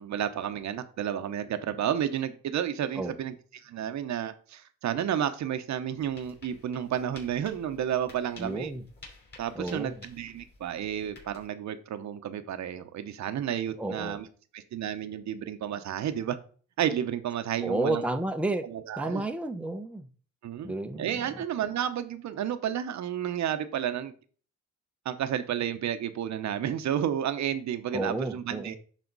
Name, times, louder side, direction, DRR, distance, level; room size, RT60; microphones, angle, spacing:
voice 1, 0.0-3.3 3.6-8.7 9.4-14.3 14.5-16.4 16.8-18.0 18.6-19.2 20.4-24.1 25.0-28.8, right 9 dB, 65° right, 1.0 m, -31 dB
sound 1, 6.0-11.5, left 3 dB, 35° left, 4.5 m, -53 dB
voice 2, 8.4-8.8 9.6-9.9 13.8-14.2 17.6-18.7 19.0-20.1 20.6-21.1 27.9-28.8, right 2 dB, 5° right, 0.8 m, -31 dB
11.0 x 4.2 x 4.0 m
cardioid pair, 90°, 30 cm